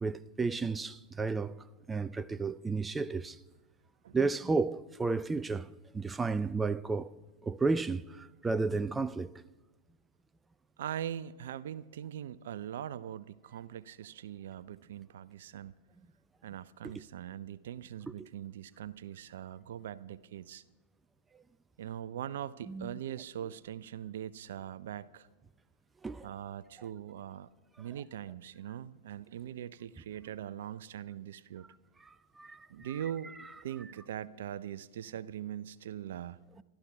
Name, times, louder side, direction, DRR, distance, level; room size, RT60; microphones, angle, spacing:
voice 1, 0.0-3.4 4.1-7.1 7.4-9.3 18.2-18.3 22.7-22.9 26.0-26.3 32.1-32.7, right 4 dB, 15° right, 0.5 m, -32 dB
voice 2, 10.8-15.7 16.4-20.6 21.8-25.3 26.2-27.5 27.8-31.7 32.7-33.3 33.6-36.4, right 10 dB, 65° right, 0.5 m, -41 dB
27.5 x 12.5 x 3.5 m
figure-of-eight pair, 95°, 0 cm